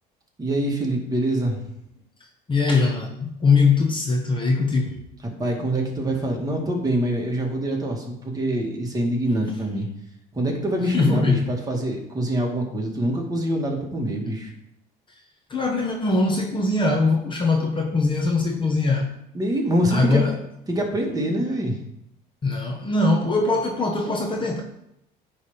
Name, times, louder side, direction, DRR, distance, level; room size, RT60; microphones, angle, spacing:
voice 1, 0.4-1.6 5.2-9.9 10.3-14.5 19.3-20.2 20.7-21.8, right 1 dB, 20° right, 0 dB, 2.0 m, -25 dB
voice 2, 2.5-5.0 10.9-11.5 15.5-19.1 19.9-20.4 22.4-24.6, left 3 dB, 25° left, 1 dB, 1.2 m, -21 dB
9.6 x 3.6 x 5.6 m, 0.80 s
supercardioid pair, 90°, 18 cm